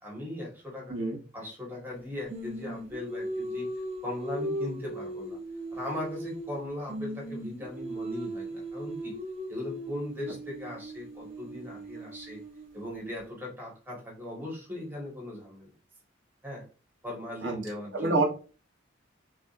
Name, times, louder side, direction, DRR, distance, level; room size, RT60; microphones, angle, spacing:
voice 1, 0.0-1.0 1.3-3.7 4.0-5.4 5.7-9.2 9.5-12.4 12.7-15.7 16.4-16.6 17.0-18.2, left 1 dB, 10° right, -3 dB, 1.5 m, -39 dB
Singing, 2.3-6.6 6.9-12.9, right 1 dB, 35° right, 1.3 m, -38 dB
voice 2, 17.9-18.2, right 3 dB, 65° right, 0 dB, 1.1 m, -26 dB
6.1 x 2.5 x 2.5 m, 0.36 s
head